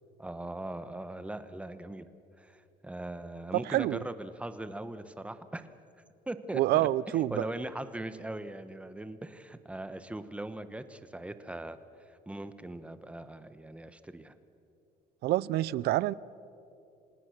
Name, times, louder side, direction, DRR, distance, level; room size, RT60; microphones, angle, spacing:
voice 1, 0.2-2.1 2.4-5.7 6.3-6.9 7.3-11.8 12.1-14.3, right 1 dB, 5° right, 1.1 m, -40 dB
voice 2, 3.5-4.0 6.5-7.5 15.2-16.1, right 15 dB, 70° right, 0.5 m, -27 dB
27.5 x 18.5 x 6.5 m
cardioid pair, 110°, 17 cm